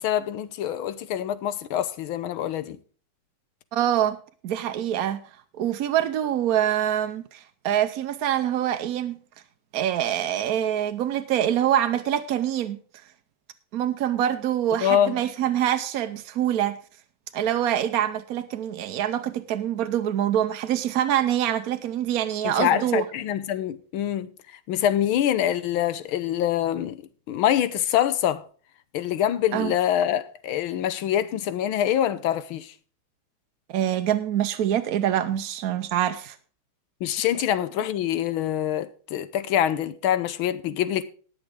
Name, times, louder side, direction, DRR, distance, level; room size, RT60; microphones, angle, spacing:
voice 1, 0.0-2.8 14.8-15.2 22.4-24.3 24.7-27.0 27.3-28.4 28.9-32.7 37.0-41.1, left 11 dB, 85° left, 1.7 m, -25 dB
voice 2, 3.7-4.2 4.4-5.2 5.6-9.2 9.7-12.8 13.7-16.8 17.3-23.0 29.5-29.7 33.7-36.4, right 11 dB, 65° right, 0.9 m, -25 dB
19.0 x 7.1 x 3.6 m
omnidirectional pair, 2.2 m